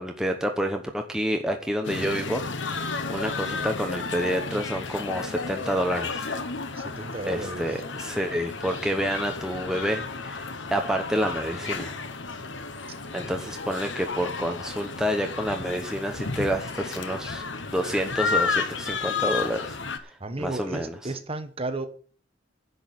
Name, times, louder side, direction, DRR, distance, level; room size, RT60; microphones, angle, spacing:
voice 1, 0.0-2.8 3.1-6.3 7.3-10.4 10.7-11.9 13.1-17.4 17.7-19.8 20.4-20.9, equal, 5° right, 1.0 m, -28 dB
sound 1, 1.8-20.0, left 4 dB, 75° left, 1.2 m, -32 dB
voice 2, 6.7-7.8 20.2-21.9, right 2 dB, 30° right, 1.4 m, -33 dB
10.5 x 6.4 x 8.8 m
head